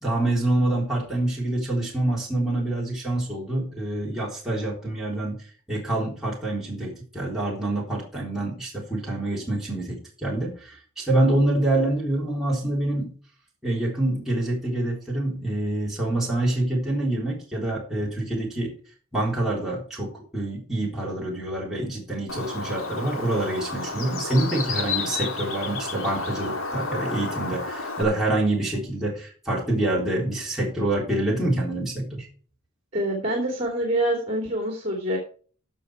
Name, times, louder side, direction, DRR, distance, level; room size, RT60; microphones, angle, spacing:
voice 1, 0.0-5.4 5.7-13.1 13.6-18.7 19.1-32.3, right 1 dB, ahead, -6 dB, 3.7 m, -26 dB
Bird, 22.3-28.0, left 3 dB, 75° left, 2.2 m, -31 dB
voice 2, 32.9-35.2, right 1 dB, 30° right, 1 dB, 3.0 m, -26 dB
15.5 x 5.6 x 4.7 m, 0.41 s
head